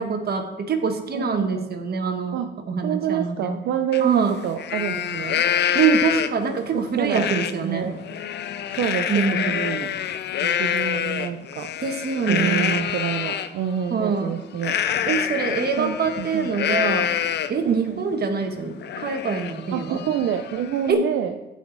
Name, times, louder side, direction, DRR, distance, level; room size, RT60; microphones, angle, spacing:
voice 1, 0.0-2.4 2.7-3.5 4.0-4.3 5.7-7.9 9.1-9.6 11.8-12.7 13.9-14.4 15.1-17.1 17.5-20.0 20.9-21.0, right 5 dB, 50° right, 5 dB, 1.3 m, -24 dB
voice 2, 1.1-1.7 2.3-2.5 2.8-5.4 6.7-8.0 8.7-9.9 10.4-11.7 12.3-14.8 15.8-16.5 17.6-18.0 19.7-21.3, right 9 dB, 75° right, 6 dB, 0.6 m, -27 dB
Livestock farm animals working animals, 3.9-4.0 4.4-6.5 7.1-7.5 7.9-13.5 14.6-17.7 18.1-18.2 18.6-20.9, left 9 dB, 60° left, 0.6 m, -26 dB
14.0 x 4.9 x 4.0 m, 1.0 s
cardioid pair, 90°, 20 cm